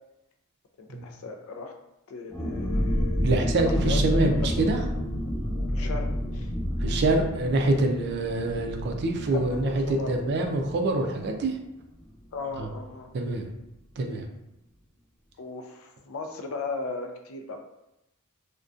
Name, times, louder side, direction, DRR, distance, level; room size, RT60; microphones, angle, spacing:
voice 1, 0.8-1.7 2.1-4.5 5.7-6.1 6.3-6.5 9.3-10.6 12.3-13.1 15.4-17.6, left 3 dB, 70° left, 4 dB, 0.4 m, -37 dB
sound 1, 2.3-11.7 12.0-12.1 12.4-12.7, equal, 15° left, 0.7 m, -29 dB
voice 2, 3.2-4.8 6.8-11.6 12.6-12.7 13.1-13.5 14.0-14.3, right 2 dB, 50° right, 4 dB, 0.3 m, -25 dB
2.5 x 2.2 x 2.3 m, 0.89 s
head